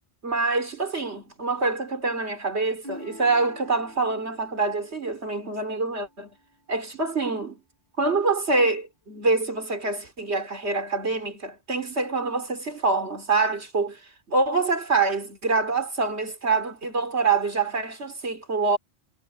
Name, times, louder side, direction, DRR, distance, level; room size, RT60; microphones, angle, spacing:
voice 1, 0.2-6.3 6.7-7.6 8.0-14.0 14.3-18.8, right 3 dB, 75° right, 3.8 m, -25 dB
sound 1, 2.8-6.5 9.0-9.5, equal, 50° right, 7.2 m, -47 dB
omnidirectional pair, 1.1 m